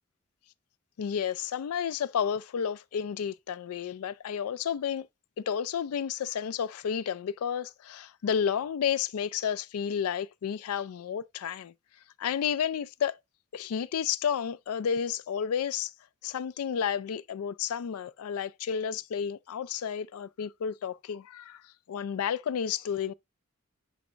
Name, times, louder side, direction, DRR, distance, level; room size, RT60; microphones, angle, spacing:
voice 1, 1.0-5.1 5.5-11.7 12.2-13.1 13.5-15.9 16.2-23.1, left 8 dB, 85° left, 0.4 m, -31 dB
10.5 x 4.1 x 2.4 m
head